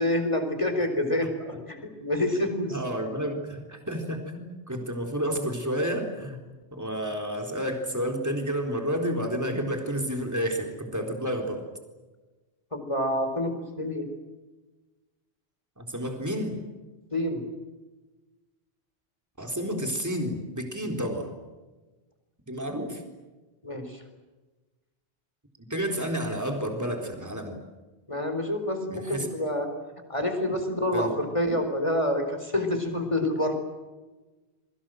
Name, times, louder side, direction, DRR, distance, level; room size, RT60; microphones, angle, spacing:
voice 1, 0.0-2.8 12.7-14.1 17.1-17.4 23.6-24.0 28.1-29.7 30.1-33.5, left 1 dB, 25° left, 6 dB, 4.6 m, -27 dB
voice 2, 2.7-6.4 6.7-11.6 15.8-16.6 19.4-21.3 22.5-23.0 25.7-27.6 28.9-29.3 30.9-31.1, equal, 15° right, 3 dB, 4.0 m, -30 dB
28.5 x 23.5 x 7.8 m, 1.2 s
omnidirectional pair, 1.2 m